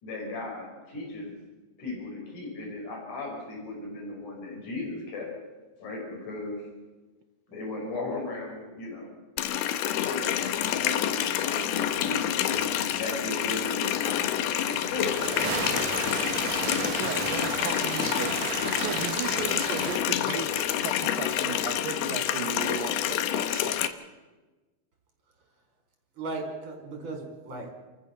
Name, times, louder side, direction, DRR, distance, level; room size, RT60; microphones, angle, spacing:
voice 1, 0.0-1.4 1.8-5.3 5.8-6.6 7.5-9.1 10.0-15.5, left 2 dB, 55° left, 0 dB, 6.8 m, -36 dB
Water tap faucet, 9.4-23.9, left 11 dB, 80° left, 2.9 m, -28 dB
sound 1, 14.7-20.0, right 7 dB, 55° right, 2.2 m, -34 dB
voice 2, 17.0-18.3 18.7-23.9, right 8 dB, 70° right, 3 dB, 2.9 m, -36 dB
voice 3, 26.1-27.7, right 3 dB, 35° right, 3 dB, 5.2 m, -36 dB
30.0 x 14.5 x 7.1 m, 1.2 s
omnidirectional pair, 4.4 m